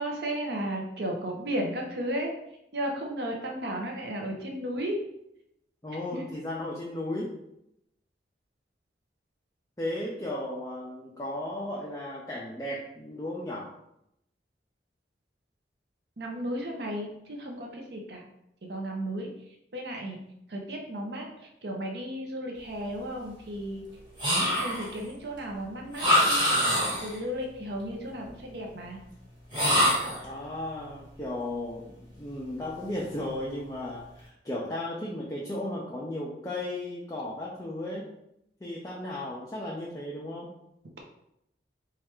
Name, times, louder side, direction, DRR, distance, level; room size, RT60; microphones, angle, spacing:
voice 1, 0.0-2.3 2.7-5.0 6.1-6.2 16.2-18.2 18.6-19.3 19.7-20.2 20.5-23.8 24.5-26.4 27.0-29.0, right 1 dB, 70° right, 1 dB, 0.6 m, -34 dB
voice 2, 5.8-7.3 9.8-13.7 30.2-38.1 38.6-40.5, left 1 dB, 15° left, -4 dB, 0.4 m, -35 dB
sound 1, 24.2-25.0 25.9-27.2 29.5-30.3, equal, 25° right, 1.4 m, -24 dB
3.3 x 2.4 x 4.3 m, 0.80 s
head